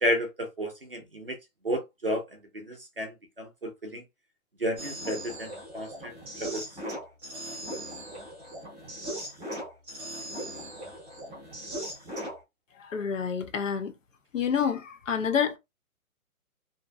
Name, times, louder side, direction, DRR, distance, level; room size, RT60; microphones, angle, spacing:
voice 1, 0.0-1.4 1.6-4.0 4.6-6.1 6.4-6.6, equal, 40° right, 0.4 m, -32 dB
sound 1, 4.8-12.4, equal, 10° right, 0.9 m, -38 dB
voice 2, 12.8-13.9 14.3-15.6, left 7 dB, 60° left, 0.5 m, -28 dB
2.5 x 2.1 x 2.4 m
hypercardioid pair, 180°, 44 cm